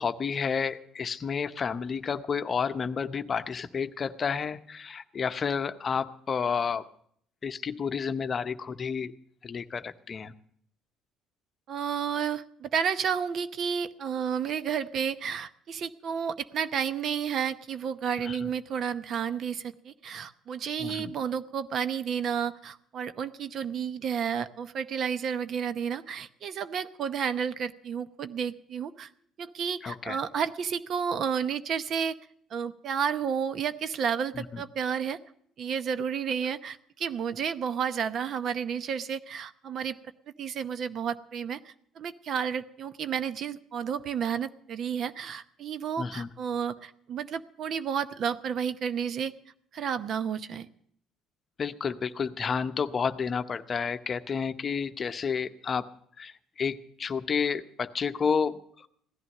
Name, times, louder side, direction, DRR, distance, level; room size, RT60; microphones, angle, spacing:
voice 1, 0.0-6.8 7.4-9.1 9.4-10.3 18.2-18.5 20.8-21.1 29.8-30.2 34.3-34.6 46.0-46.3 51.6-55.9 56.2-58.9, left 6 dB, 35° left, 11 dB, 0.8 m, -31 dB
voice 2, 11.7-29.1 29.4-32.2 32.5-35.2 35.6-40.0 40.4-49.3 49.7-50.7, right 7 dB, 55° right, 13 dB, 0.8 m, -31 dB
16.5 x 11.0 x 6.5 m, 0.65 s
cardioid pair, 95°, 0 cm